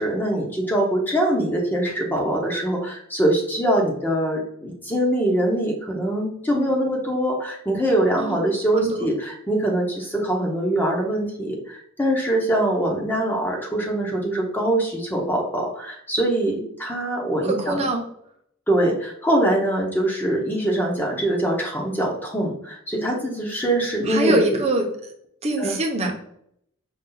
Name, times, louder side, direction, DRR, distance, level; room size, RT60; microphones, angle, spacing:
voice 1, 0.0-17.9 18.7-24.6 25.6-25.8, right 1 dB, 10° left, -1 dB, 0.8 m, -23 dB
voice 2, 8.7-9.1 17.4-18.0 24.1-24.9 25.4-26.1, right 1 dB, 30° right, 1 dB, 0.8 m, -23 dB
5.4 x 2.4 x 3.8 m, 0.70 s
head